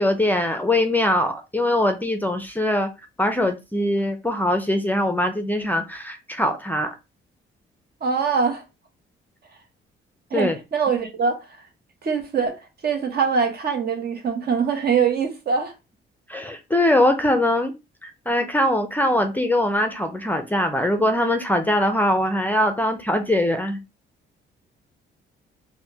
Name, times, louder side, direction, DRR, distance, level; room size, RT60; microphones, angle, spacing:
voice 1, 0.0-2.9 3.2-7.0 10.3-10.6 16.3-17.7 18.0-23.8, left 1 dB, 10° left, 0.4 m, -22 dB
voice 2, 8.0-8.6 10.3-11.5 12.0-15.7, right 6 dB, 55° right, 0.8 m, -23 dB
3.3 x 2.1 x 2.7 m
cardioid pair, 90°, 20 cm